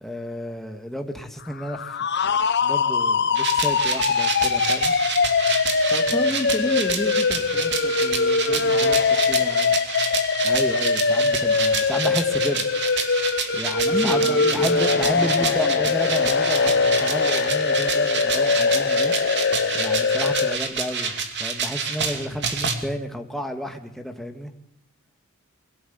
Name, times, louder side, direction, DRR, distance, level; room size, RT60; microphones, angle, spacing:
voice 1, 0.0-2.0 2.2-2.3 2.6-5.0 10.4-12.7 13.5-19.5 19.7-21.1 21.4-24.5, equal, ahead, 4 dB, 2.0 m, -31 dB
sound 1, 1.5-20.6, left 4 dB, 55° left, 1.0 m, -22 dB
sound 2, 3.3-22.8, right 5 dB, 55° right, 2.7 m, -29 dB
voice 2, 5.9-9.7 13.8-15.8 16.2-16.3, left 1 dB, 20° left, 1 dB, 2.5 m, -31 dB
23.5 x 17.5 x 9.6 m, 0.74 s
head